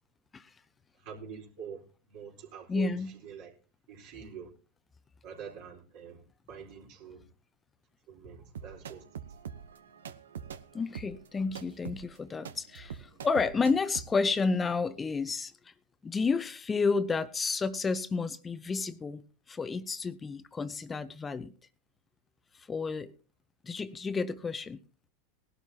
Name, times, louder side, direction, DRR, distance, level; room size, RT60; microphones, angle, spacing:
voice 1, 1.0-2.9 3.2-3.5 3.9-4.5 5.2-6.2 6.5-7.2 8.1-9.1, right 7 dB, 60° right, 4.2 m, -45 dB
voice 2, 2.7-3.1 10.7-15.7 16.0-21.5 22.6-23.1 23.6-24.8, left 4 dB, 20° left, 0.7 m, -31 dB
sound 1, 8.6-14.1, right 8 dB, 85° right, 0.8 m, -44 dB
18.5 x 12.0 x 2.8 m
hypercardioid pair, 100°, 0 cm